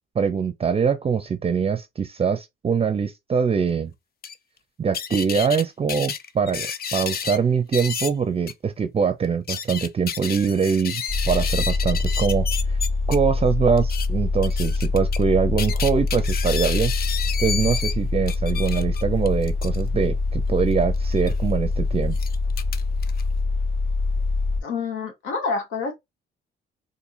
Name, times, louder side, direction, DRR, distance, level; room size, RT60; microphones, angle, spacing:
voice 1, 0.2-3.9 4.8-12.5 13.1-16.9 17.4-22.2, right 6 dB, 30° right, 0.5 m, -23 dB
sound 1, 4.2-4.3 4.9-5.6 5.9-7.4 7.7-8.1 8.5-8.6 9.2-13.2 13.8-14.1 14.4-15.2 15.6-17.9 18.3-19.8 21.1-21.3 22.1-23.2, left 7 dB, 50° left, 0.5 m, -31 dB
sound 2, 11.1-24.6, left 3 dB, 70° left, 2.1 m, -24 dB
voice 2, 24.6-25.9, left 4 dB, 90° left, 1.1 m, -27 dB
4.2 x 2.6 x 2.5 m
cardioid pair, 90°, 20 cm